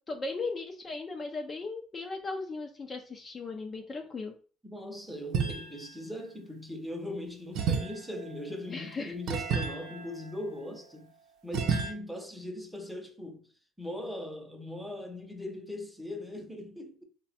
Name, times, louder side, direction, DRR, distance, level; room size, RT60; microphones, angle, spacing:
voice 1, 0.1-4.3 8.7-9.1, left 3 dB, 30° left, 0.5 m, -37 dB
voice 2, 4.6-11.1 11.4-13.5 13.8-17.0, left 1 dB, 5° right, 0.8 m, -40 dB
sound 1, 5.3-6.0 7.5-11.0 11.5-11.9, right 6 dB, 70° right, 0.6 m, -33 dB
3.4 x 2.2 x 4.1 m
supercardioid pair, 100°, 0 cm